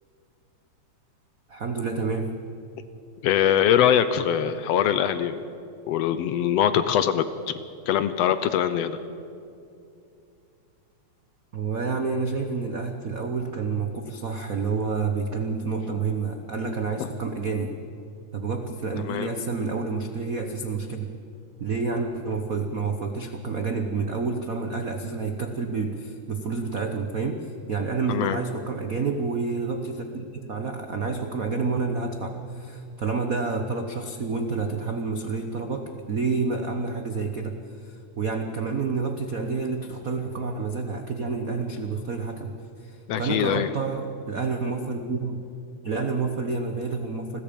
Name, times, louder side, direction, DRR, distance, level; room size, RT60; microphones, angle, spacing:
voice 1, 1.5-2.3 11.5-17.7 18.3-21.1 21.6-42.5 42.8-45.4 45.8-47.4, right 4 dB, 80° right, 5 dB, 0.7 m, -29 dB
voice 2, 3.2-5.4 5.9-7.5 7.9-9.0 17.0-17.1 19.0-19.3 28.1-28.4 43.1-43.7, left 9 dB, 70° left, 12 dB, 1.7 m, -23 dB
30.0 x 21.0 x 5.3 m, 2.5 s
omnidirectional pair, 3.3 m